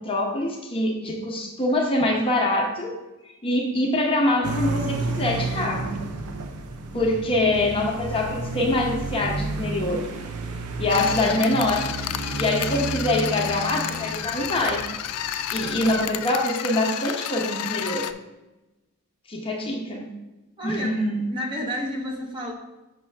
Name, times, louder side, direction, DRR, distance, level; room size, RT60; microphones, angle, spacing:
voice 1, 0.0-2.9 3.4-6.0 6.9-10.1 10.8-11.9 12.3-14.9 15.5-18.1 19.3-20.1 20.6-21.2, left 1 dB, 25° left, -1 dB, 0.9 m, -24 dB
sound 1, 4.4-16.0, right 3 dB, 80° right, 0.6 m, -32 dB
sound 2, 10.9-18.1, left 11 dB, 90° left, 0.4 m, -31 dB
voice 2, 20.6-20.9 21.3-22.5, equal, 20° right, -1 dB, 0.9 m, -30 dB
5.9 x 5.6 x 3.4 m, 1.1 s
head